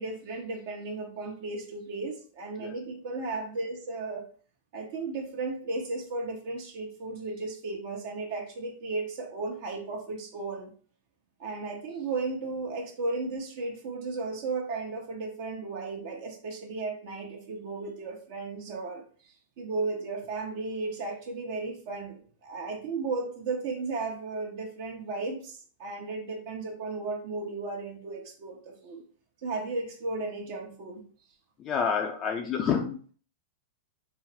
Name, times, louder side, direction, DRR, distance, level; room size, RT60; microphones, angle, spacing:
voice 1, 0.0-4.2 4.7-10.7 11.4-19.0 19.6-29.0 29.4-31.0, right 3 dB, 60° right, 1 dB, 0.9 m, -35 dB
voice 2, 31.6-33.1, left 6 dB, 30° left, 2 dB, 0.4 m, -28 dB
4.0 x 2.0 x 4.1 m, 0.43 s
hypercardioid pair, 130°, 0 cm